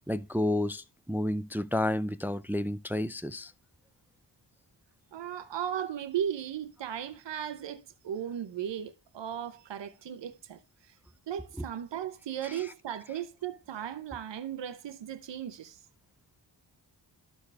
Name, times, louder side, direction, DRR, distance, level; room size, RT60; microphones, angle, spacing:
voice 1, 0.0-3.5 12.5-12.6, left 1 dB, 5° right, 0.3 m, -31 dB
voice 2, 5.1-10.6 10.9-11.0 11.3-15.8, right 9 dB, 85° right, 0.9 m, -36 dB
13.0 x 4.5 x 3.4 m
wide cardioid pair, 100°, 43 cm